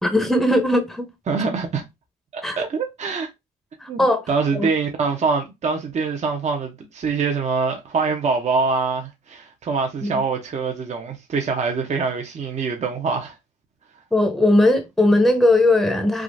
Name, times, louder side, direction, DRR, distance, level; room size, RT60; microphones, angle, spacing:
voice 1, 0.0-1.1 2.4-2.6 3.8-4.2 4.5-4.7 10.0-10.2 14.1-16.2, left 1 dB, ahead, 0.8 m, -18 dB
voice 2, 1.3-1.8 2.3-3.3 3.9-4.0 4.3-13.4, right 4 dB, 40° right, 0.8 m, -24 dB
3.6 x 2.4 x 2.6 m
supercardioid pair, 65°, 17 cm